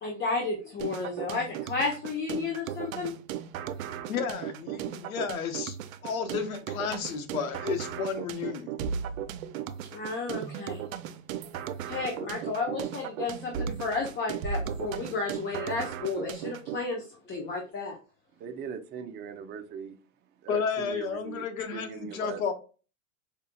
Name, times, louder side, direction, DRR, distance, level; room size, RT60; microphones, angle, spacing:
voice 1, 0.0-3.1 9.9-10.8 11.9-18.0, left 3 dB, 25° left, 0.9 m, -32 dB
sound 1, 0.8-16.8, right 8 dB, 80° right, 0.6 m, -36 dB
voice 2, 4.1-5.8 6.0-8.7 20.5-22.5, left 6 dB, 90° left, 0.9 m, -32 dB
voice 3, 18.4-20.0 20.4-21.4 21.7-22.5, right 7 dB, 25° right, 0.5 m, -40 dB
4.9 x 2.8 x 2.2 m
hypercardioid pair, 110°, 41 cm